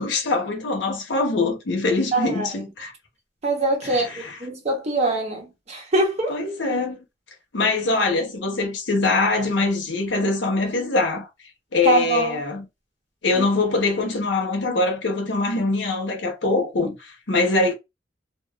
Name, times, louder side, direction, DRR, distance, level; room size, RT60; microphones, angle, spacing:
voice 1, 0.0-2.9 3.8-4.4 6.3-7.0 7.5-11.3 11.7-12.6 13.2-17.7, left 3 dB, 85° left, 0.9 m, -23 dB
voice 2, 2.1-2.5 3.4-6.4 11.8-12.4 13.3-13.4, right 2 dB, 40° right, 0.9 m, -23 dB
2.9 x 2.1 x 2.3 m
head